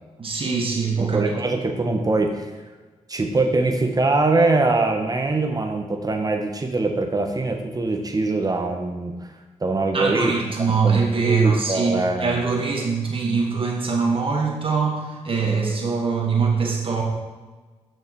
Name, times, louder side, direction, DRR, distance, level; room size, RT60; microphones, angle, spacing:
voice 1, 0.2-1.2 9.9-17.0, right 5 dB, 50° right, -1 dB, 2.0 m, -23 dB
voice 2, 1.0-2.5 3.1-9.3 9.6-12.4, right 2 dB, 30° right, 4 dB, 1.2 m, -23 dB
6.6 x 6.6 x 4.7 m, 1.3 s
cardioid pair, 70°, 12 cm